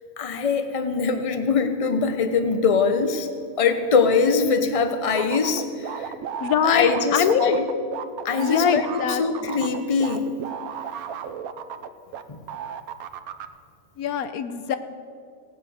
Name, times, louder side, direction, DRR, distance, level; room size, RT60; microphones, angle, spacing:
voice 1, 0.2-3.3 3.6-6.1 6.6-7.7 8.2-10.3 12.3-12.4, left 5 dB, 30° left, 8 dB, 0.8 m, -22 dB
sound 1, 5.2-12.2 12.5-13.5, right 8 dB, 80° right, 1.2 m, -33 dB
voice 2, 6.4-7.6 8.4-9.5 14.0-14.8, left 7 dB, 80° left, 10 dB, 1.2 m, -23 dB
17.0 x 9.3 x 6.5 m, 2.3 s
omnidirectional pair, 1.5 m